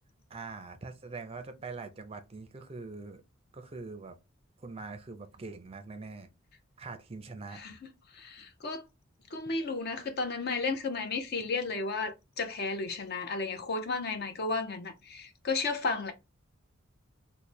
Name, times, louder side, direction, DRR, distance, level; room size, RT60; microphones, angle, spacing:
voice 1, 0.3-3.2 3.5-4.2 4.6-6.3 6.8-7.6, right 4 dB, 30° right, 0.4 m, -43 dB
voice 2, 8.1-8.8 9.3-16.1, left 3 dB, 50° left, 0.6 m, -33 dB
3.1 x 2.1 x 4.1 m
head